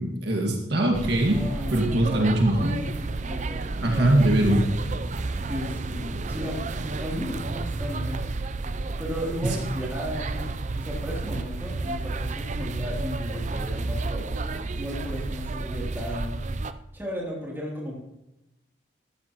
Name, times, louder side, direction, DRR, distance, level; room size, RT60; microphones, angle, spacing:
voice 1, 0.0-1.4 1.7-2.6 3.8-4.6 9.4-9.6, right 1 dB, 60° right, 0 dB, 1.8 m, -22 dB
sound 1, 0.9-16.7, right 3 dB, 40° right, 0.5 m, -31 dB
voice 2, 1.2-4.3 5.4-8.2 9.0-16.4 16.9-17.9, equal, 10° right, -3 dB, 3.0 m, -35 dB
13.5 x 13.0 x 3.0 m, 0.92 s
head